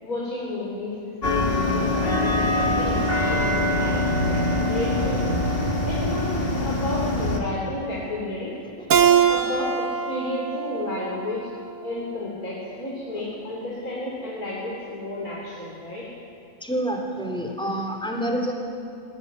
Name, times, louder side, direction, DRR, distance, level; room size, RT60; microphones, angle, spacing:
voice 1, 0.0-5.4 5.8-8.5 9.0-11.5 11.8-16.0, left 2 dB, 75° left, -5 dB, 4.2 m, -32 dB
sound 1, 1.2-7.4, left 1 dB, 40° left, 2.4 m, -23 dB
Keyboard (musical), 8.9-12.1, right 8 dB, 60° right, 1.4 m, -23 dB
voice 2, 16.6-18.5, right 1 dB, 5° left, 2 dB, 3.0 m, -27 dB
19.5 x 17.5 x 9.6 m, 2.4 s
omnidirectional pair, 1.5 m